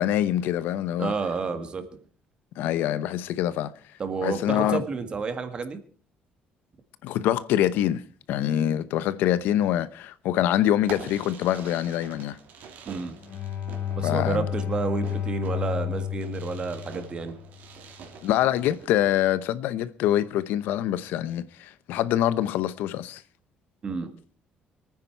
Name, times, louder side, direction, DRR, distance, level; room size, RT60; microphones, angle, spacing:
voice 1, 0.0-1.1 2.6-3.7 4.2-4.8 7.0-8.0 8.3-12.4 14.0-14.5 18.2-23.2, left 12 dB, 85° left, 0.8 m, -25 dB
voice 2, 1.0-1.8 4.0-5.8 12.9-13.1 14.0-17.3 23.8-24.1, right 4 dB, 30° right, 1.8 m, -30 dB
Fireworks, 10.8-19.2, right 6 dB, 65° right, 3.1 m, -46 dB
Bowed string instrument, 13.2-17.7, left 9 dB, 55° left, 2.8 m, -31 dB
23.5 x 9.7 x 4.6 m
cardioid pair, 155°, 3 cm